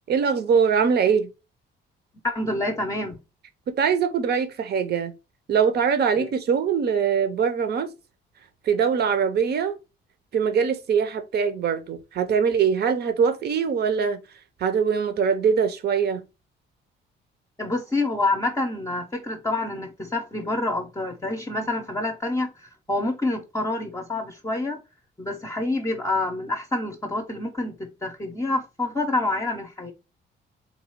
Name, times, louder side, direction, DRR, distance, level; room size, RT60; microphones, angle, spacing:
voice 1, 0.1-1.3 3.7-5.1 5.5-7.9 8.6-9.7 10.3-14.2 14.6-16.2, right 6 dB, 55° right, 0.8 m, -22 dB
voice 2, 2.2-3.2 6.2-6.3 17.6-24.8 25.2-29.9, left 2 dB, 15° left, 0.7 m, -27 dB
4.0 x 2.4 x 4.3 m
cardioid pair, 125°, 19 cm